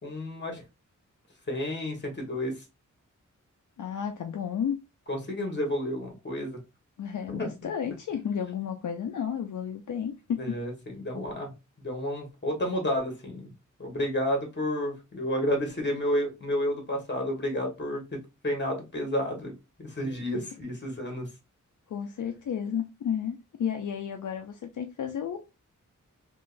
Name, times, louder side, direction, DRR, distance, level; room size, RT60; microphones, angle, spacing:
voice 1, 0.0-0.6 1.5-2.6 5.1-6.6 7.3-7.5 10.4-11.5 11.8-13.5 13.8-18.0 18.4-19.5 19.8-21.3, left 1 dB, 35° left, 1.5 m, -31 dB
voice 2, 3.8-4.8 7.0-10.6 21.9-25.4, left 8 dB, 70° left, 0.5 m, -32 dB
3.7 x 3.0 x 2.5 m
wide cardioid pair, 110°, 31 cm